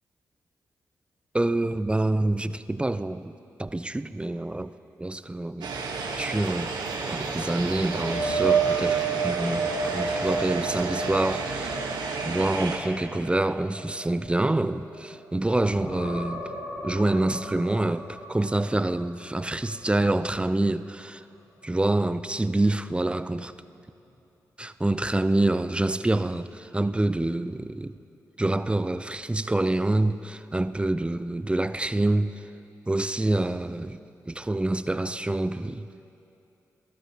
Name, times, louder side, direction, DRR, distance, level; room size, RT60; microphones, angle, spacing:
voice 1, 1.3-3.3 3.6-4.7 5.0-5.7 6.2-6.7 7.1-11.8 12.2-16.5 16.8-21.2 21.6-23.5 24.6-28.0 28.4-32.4 32.9-34.0 34.3-35.9, right 2 dB, 15° right, 0.4 m, -26 dB
sound 1, 5.6-12.8, right 4 dB, 75° right, 1.1 m, -32 dB
sound 2, 7.8-15.3 15.6-19.5 19.8-20.1 23.4-23.5, right 5 dB, 90° left, 1.9 m, -31 dB
19.5 x 12.5 x 2.8 m
supercardioid pair, 40°, 7 cm